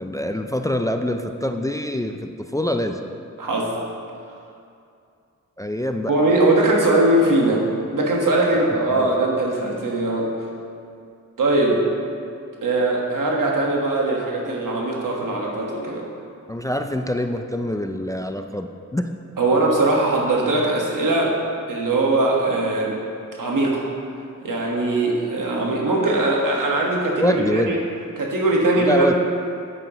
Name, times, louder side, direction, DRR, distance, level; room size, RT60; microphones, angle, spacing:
voice 1, 0.0-3.0 5.6-6.1 8.5-8.6 8.9-9.1 16.5-19.1 27.2-27.8 28.8-29.1, left 1 dB, 10° left, 6 dB, 0.3 m, -25 dB
voice 2, 3.4-3.7 6.1-7.6 7.9-10.3 11.4-11.8 12.6-16.0 19.4-21.4 21.7-23.0 23.4-23.9 24.4-27.8 28.2-29.1, right 2 dB, 85° right, -2 dB, 1.5 m, -20 dB
9.7 x 8.6 x 3.0 m, 2.5 s
wide cardioid pair, 85°, 31 cm